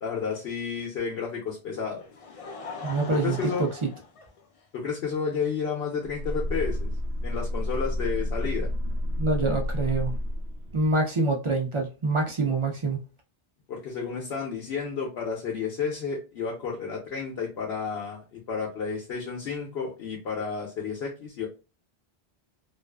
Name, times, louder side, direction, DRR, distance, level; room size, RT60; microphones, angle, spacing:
voice 1, 0.0-2.0 3.1-3.7 4.7-6.9 7.2-8.7 13.7-21.5, left 5 dB, 80° left, 0.9 m, -31 dB
Laughter, 1.7-4.9 5.7-5.8 7.3-7.4, left 4 dB, 55° left, 0.4 m, -41 dB
voice 2, 2.8-3.7 9.2-10.1 10.7-13.0, right 2 dB, 45° right, 0.4 m, -26 dB
sound 1, 6.0-10.9, left 1 dB, 80° right, 0.9 m, -30 dB
2.4 x 2.3 x 2.2 m
omnidirectional pair, 1.0 m